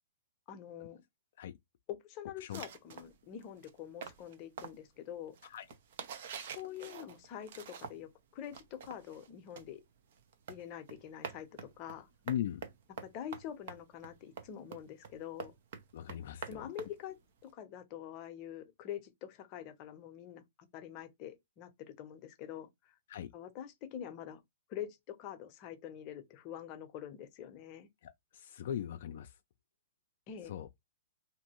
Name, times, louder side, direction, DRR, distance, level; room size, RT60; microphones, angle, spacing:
voice 1, 0.5-1.0 1.9-5.4 6.5-9.8 10.5-12.1 13.0-15.5 16.5-17.2 17.4-23.0 23.3-24.4 24.7-27.9 30.3-30.6, left 10 dB, 35° left, 0.7 m, -45 dB
sound 1, 2.5-8.2 8.4-17.5, right 6 dB, 60° right, 0.7 m, -47 dB
voice 2, 12.3-12.6 15.9-16.7 23.1-23.3 28.0-29.3 30.5-30.7, left 10 dB, 60° left, 0.3 m, -39 dB
2.6 x 2.5 x 2.9 m
hypercardioid pair, 140°, 0 cm